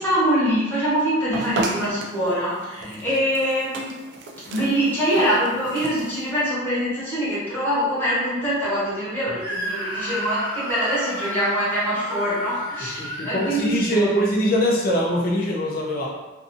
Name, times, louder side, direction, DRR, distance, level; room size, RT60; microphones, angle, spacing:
voice 1, 0.0-3.9 4.4-14.3, equal, 10° left, -11 dB, 1.0 m, -24 dB
sound 1, 1.3-6.3, right 2 dB, 60° right, 0.4 m, -33 dB
Screaming, 9.4-14.3, equal, 10° right, 1.1 m, -32 dB
voice 2, 13.0-16.1, equal, 45° left, -3 dB, 0.5 m, -23 dB
2.6 x 2.4 x 2.6 m, 1.1 s
head